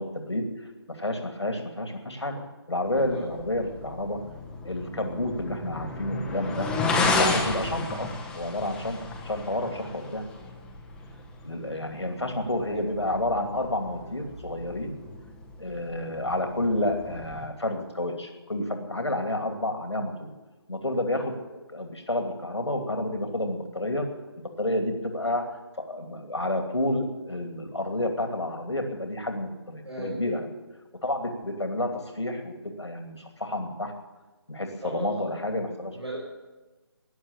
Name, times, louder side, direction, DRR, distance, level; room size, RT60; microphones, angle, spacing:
voice 1, 0.0-2.4 2.7-4.2 4.6-6.7 7.0-8.1 8.3-9.0 9.2-10.2 11.4-14.9 15.6-20.3 20.7-24.1 24.6-25.4 25.9-30.5 31.0-33.9 34.5-36.0, left 1 dB, 90° left, 4 dB, 2.7 m, -30 dB
sound 1, 2.8-17.5, left 3 dB, 5° left, 1.2 m, -33 dB
voice 2, 29.9-30.2 34.8-35.1 35.9-36.2, right 1 dB, 85° right, -4 dB, 6.0 m, -35 dB
15.5 x 9.9 x 8.8 m, 1.2 s
figure-of-eight pair, 150°, 14 cm